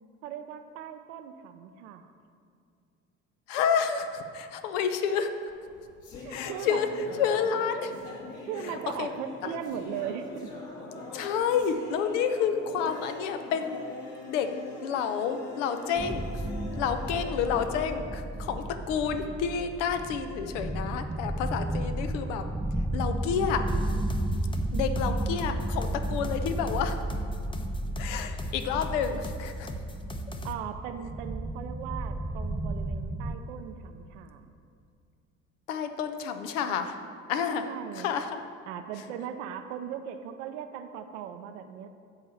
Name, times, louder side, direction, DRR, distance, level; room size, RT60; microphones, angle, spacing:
voice 1, 0.2-2.1 6.2-6.8 8.4-10.5 24.7-24.8 30.4-34.5 37.7-38.1 38.7-41.9, right 9 dB, 75° right, 8 dB, 0.7 m, -38 dB
voice 2, 3.5-5.3 6.3-6.9 7.2-7.9 8.6-9.1 9.4-9.5 11.1-13.9 14.3-14.5 14.8-16.4 16.8-22.5 22.9-23.7 24.7-27.0 28.0-29.7 35.7-37.0 37.3-37.7 37.9-38.4, left 7 dB, 75° left, 8 dB, 0.8 m, -29 dB
sound 1, 5.5-18.9, left 3 dB, 50° left, 2.2 m, -43 dB
sound 2, 16.0-33.4, right 1 dB, 5° right, 0.3 m, -33 dB
sound 3, 23.7-30.5, left 1 dB, 15° left, 0.7 m, -40 dB
8.0 x 4.9 x 7.1 m, 2.3 s
hypercardioid pair, 65°, 37 cm